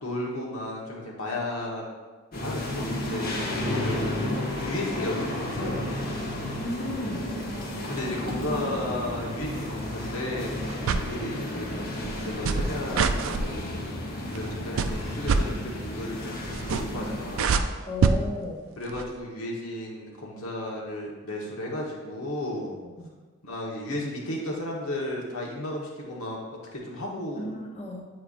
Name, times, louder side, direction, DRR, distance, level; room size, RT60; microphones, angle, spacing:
voice 1, 0.0-1.8 2.3-6.2 7.9-11.8 12.2-14.0 14.3-17.7 18.8-22.8 23.4-26.4 26.7-27.5, left 1 dB, 85° left, -2 dB, 1.3 m, -34 dB
sound 1, 2.3-17.4, left 1 dB, 45° left, 1.1 m, -32 dB
voice 2, 6.6-7.3 10.8-11.1 17.9-18.6 23.0-23.1 27.4-28.0, left 1 dB, 30° left, -2 dB, 0.7 m, -34 dB
sound 2, 10.7-11.1 12.0-13.4 14.3-14.5 14.8-15.4 16.5-17.0 17.3-18.2 18.9-19.0, right 5 dB, 70° right, 0.3 m, -24 dB
8.4 x 4.4 x 2.5 m, 1.3 s
head